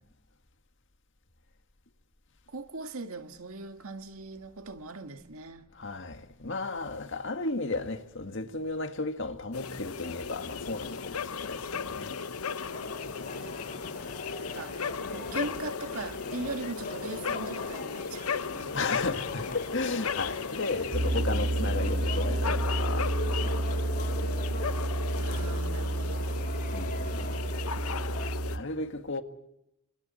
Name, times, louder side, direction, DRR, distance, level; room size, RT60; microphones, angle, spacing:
voice 1, 2.5-5.7 14.5-14.8 15.1-19.4 25.2-26.4, right 3 dB, 75° right, 1.9 m, -40 dB
voice 2, 5.8-12.2 18.7-23.2 26.7-27.3 28.4-29.2, left 3 dB, 60° left, 1.8 m, -34 dB
sound 1, 9.5-28.6, left 5 dB, 90° left, 0.9 m, -36 dB
sound 2, 12.6-28.3, left 2 dB, 40° left, 5.3 m, -43 dB
sound 3, 20.9-28.6, right 1 dB, 55° right, 1.1 m, -30 dB
29.5 x 26.5 x 4.3 m
head